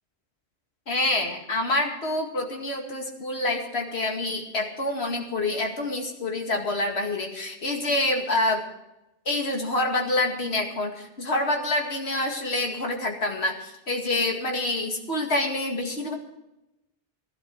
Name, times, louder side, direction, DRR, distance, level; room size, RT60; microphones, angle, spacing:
voice 1, 0.9-8.6 9.3-16.1, left 2 dB, 75° left, 2 dB, 2.4 m, -27 dB
16.0 x 12.5 x 4.7 m, 0.93 s
omnidirectional pair, 1.1 m